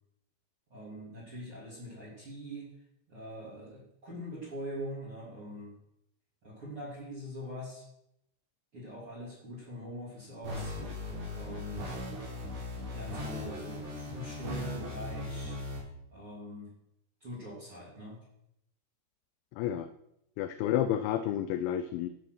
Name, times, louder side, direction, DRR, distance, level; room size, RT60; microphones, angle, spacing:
voice 1, 0.7-2.7 3.1-5.7 6.4-7.8 8.7-10.8 11.3-12.0 12.9-15.6 16.1-16.7 17.2-18.2, equal, 30° right, -8 dB, 3.3 m, -43 dB
sound 1, 10.4-15.8, left 1 dB, 55° right, 6.0 m, -38 dB
voice 2, 19.5-19.9 20.4-22.1, left 11 dB, 85° left, 11 dB, 2.7 m, -30 dB
14.5 x 6.2 x 6.2 m, 0.81 s
omnidirectional pair, 5.5 m